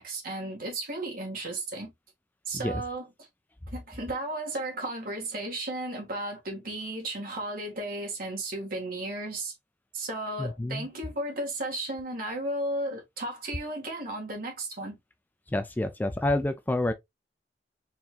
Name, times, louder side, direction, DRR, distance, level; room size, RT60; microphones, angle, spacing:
voice 1, 0.0-1.9 2.5-3.1 3.7-9.5 9.9-15.0, right 1 dB, 55° right, 2.0 m, -34 dB
voice 2, 10.4-10.9 15.5-16.9, left 1 dB, 10° left, 0.3 m, -28 dB
4.3 x 3.5 x 2.4 m
head